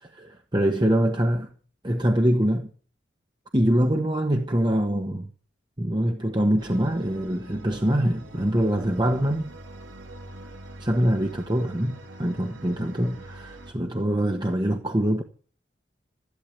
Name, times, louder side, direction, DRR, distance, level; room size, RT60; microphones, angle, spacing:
voice 1, 0.1-1.5 1.8-2.7 3.5-5.3 5.8-9.5 10.8-15.2, equal, 25° right, 1.3 m, -24 dB
sound 1, 6.6-13.7, right 1 dB, 90° right, 2.6 m, -44 dB
14.0 x 12.0 x 8.2 m
head